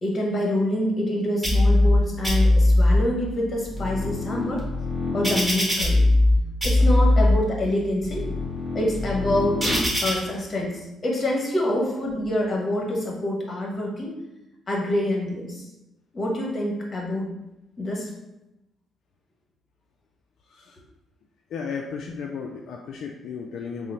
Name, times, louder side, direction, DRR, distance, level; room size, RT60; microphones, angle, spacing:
voice 1, 0.0-4.6 5.1-6.0 6.6-8.3 8.7-9.6 10.0-10.7 11.0-14.1 14.7-15.7 16.1-17.3 17.8-18.1, left 1 dB, 35° left, -1 dB, 1.1 m, -26 dB
sound 1, 1.4-2.0 2.2-3.0 3.5-6.3 6.6-7.3 7.9-10.1, left 1 dB, 15° right, 1.4 m, -21 dB
voice 2, 21.5-23.9, left 5 dB, 70° left, 1 dB, 0.3 m, -34 dB
3.7 x 2.0 x 4.3 m, 0.93 s
cardioid pair, 90°, 0 cm